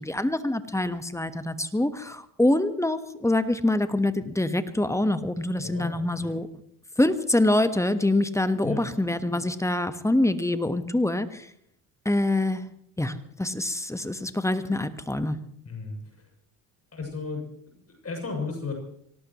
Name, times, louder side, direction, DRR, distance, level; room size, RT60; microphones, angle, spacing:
voice 1, 0.0-6.5 7.0-11.5 12.0-12.6 13.0-15.4, left 1 dB, 5° left, 11 dB, 1.4 m, -25 dB
voice 2, 5.6-6.3 8.6-8.9 15.6-16.0 16.9-18.7, left 4 dB, 30° left, 2 dB, 7.6 m, -35 dB
24.5 x 18.0 x 3.1 m, 0.68 s
supercardioid pair, 75°, 47 cm